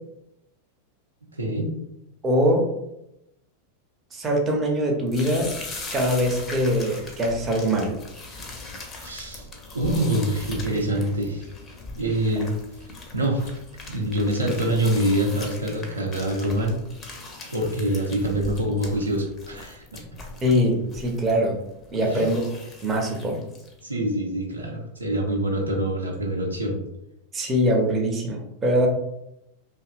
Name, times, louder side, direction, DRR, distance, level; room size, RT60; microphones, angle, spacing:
voice 1, 1.4-1.7 9.0-9.5 9.7-11.5 12.0-12.5 13.1-13.5 13.8-16.8 17.5-20.0 22.0-22.2 23.8-26.8, right 1 dB, 80° right, 0 dB, 0.5 m, -25 dB
voice 2, 2.2-2.7 4.1-5.5 5.9-7.9 20.4-21.6 21.9-22.4 22.8-23.4 27.3-28.9, equal, 20° right, 0 dB, 0.6 m, -22 dB
sound 1, 5.1-23.8, left 2 dB, 25° left, 0.5 m, -40 dB
2.7 x 2.4 x 2.3 m, 0.84 s
figure-of-eight pair, 90°, 0 cm